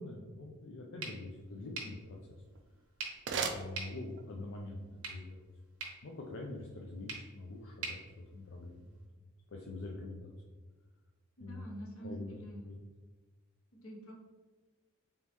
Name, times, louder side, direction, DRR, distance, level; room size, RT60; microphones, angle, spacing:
voice 1, 0.0-2.4 3.3-5.5 6.0-8.9 9.2-10.3 11.4-11.7 12.0-12.8, left 2 dB, 55° left, -1 dB, 0.5 m, -45 dB
sound 1, 1.0-9.0, right 4 dB, 80° right, 1.0 m, -48 dB
sound 2, 2.3-4.5, right 5 dB, 50° right, 0.4 m, -40 dB
voice 2, 11.4-12.7 13.8-14.1, right 1 dB, 75° left, -1 dB, 1.0 m, -47 dB
4.0 x 3.7 x 3.0 m, 1.3 s
head